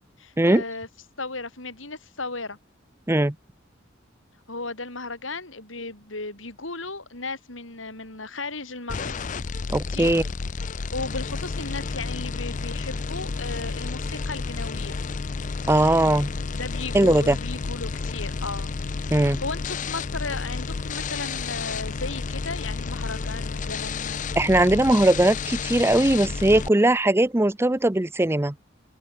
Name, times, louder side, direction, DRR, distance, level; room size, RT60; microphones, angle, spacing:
voice 1, 0.2-0.9 1.2-2.6 4.5-9.1 9.9-10.1 10.9-15.0 16.5-18.7 19.1-24.2, left 3 dB, 85° left, 7.2 m, -35 dB
sound 1, 8.9-26.7, left 4 dB, 40° left, 0.5 m, -31 dB
voice 2, 9.7-10.2 15.7-16.3 16.9-17.4 19.1-19.4 24.4-28.5, right 1 dB, 15° right, 0.6 m, -20 dB
head